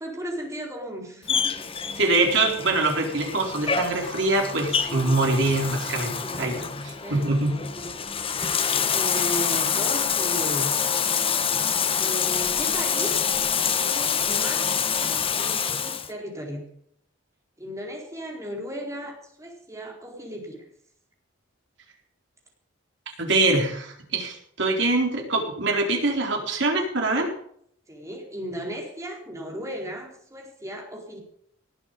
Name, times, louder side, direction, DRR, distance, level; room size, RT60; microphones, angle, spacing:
voice 1, 0.0-1.6 6.2-7.9 8.9-10.8 12.0-13.2 13.6-16.6 17.6-20.6 27.9-31.2, equal, 15° right, 1 dB, 4.3 m, -36 dB
Bathtub (filling or washing), 1.3-16.1, left 7 dB, 30° left, 1.1 m, -26 dB
voice 2, 2.0-7.6 23.2-27.3, right 2 dB, 65° right, 2 dB, 4.2 m, -24 dB
19.5 x 8.8 x 5.4 m, 0.65 s
head